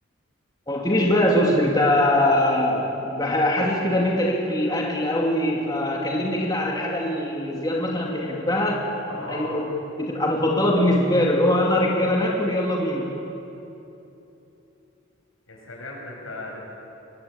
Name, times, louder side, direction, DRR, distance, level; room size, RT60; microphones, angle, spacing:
voice 1, 0.7-8.9 9.1-9.7 10.0-13.1, left 1 dB, 20° left, -2 dB, 2.5 m, -22 dB
voice 2, 9.1-9.6 15.5-16.6, left 2 dB, 85° left, -2 dB, 7.9 m, -36 dB
25.0 x 21.0 x 8.9 m, 2.9 s
head